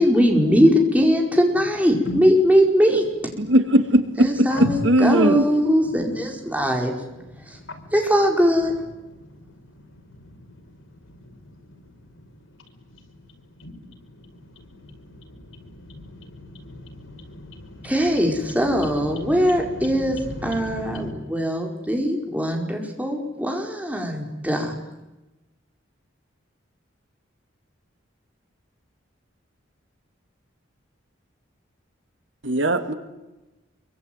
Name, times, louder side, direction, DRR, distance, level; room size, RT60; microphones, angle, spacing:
voice 1, 0.0-3.1 4.2-6.9 7.9-8.7 17.8-24.7, equal, 5° right, 2 dB, 4.8 m, -20 dB
voice 2, 3.4-4.5 4.8-5.4 32.4-32.9, right 1 dB, 70° right, 8 dB, 2.6 m, -18 dB
voice 3, 7.1-7.9 9.1-9.4 9.7-10.3 11.0-11.9 12.9-13.0 13.6-21.1, left 1 dB, 85° left, 5 dB, 5.7 m, -38 dB
26.0 x 24.0 x 9.4 m, 1.0 s
head